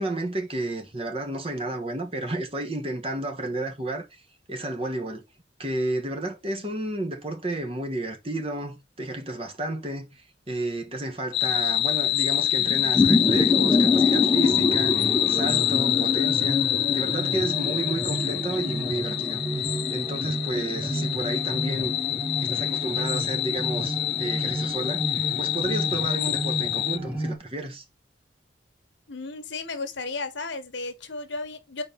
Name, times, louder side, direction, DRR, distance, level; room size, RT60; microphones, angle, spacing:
voice 1, 0.0-4.2 4.5-5.2 5.6-16.6 16.9-19.6 19.9-21.9 22.4-27.8, right 1 dB, 30° right, 1.4 m, -32 dB
sound 1, 11.3-27.0, left 14 dB, 55° left, 0.4 m, -26 dB
sound 2, 12.6-27.3, left 1 dB, 10° right, 2.1 m, -27 dB
voice 2, 29.1-31.8, left 3 dB, 80° left, 1.3 m, -34 dB
4.5 x 4.4 x 5.4 m
head